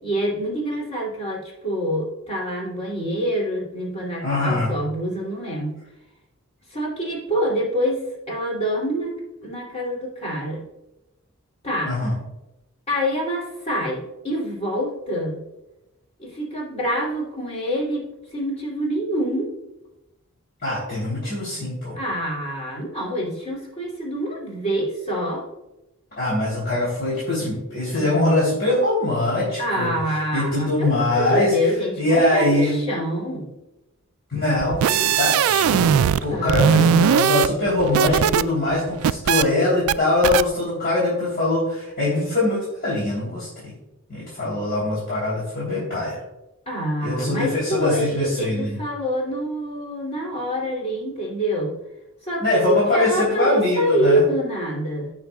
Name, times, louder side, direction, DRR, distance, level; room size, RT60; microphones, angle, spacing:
voice 1, 0.0-5.8 6.7-8.0 8.3-10.6 11.6-11.9 12.9-15.4 16.2-19.5 21.9-25.5 27.9-28.1 29.6-33.5 36.3-36.9 46.7-51.8 52.2-55.1, equal, 30° left, -4 dB, 2.8 m, -26 dB
voice 2, 4.2-4.7 11.8-12.1 20.6-21.9 26.2-29.9 30.3-31.5 32.0-32.8 34.3-43.7 44.1-46.2 47.0-48.8 52.4-54.3, left 2 dB, 50° left, -7 dB, 3.2 m, -22 dB
sound 1, 34.6-36.2 36.5-38.4 38.7-39.4 39.9-40.0 40.2-40.4, right 8 dB, 85° right, 0.3 m, -19 dB
15.5 x 6.0 x 2.3 m, 0.95 s
head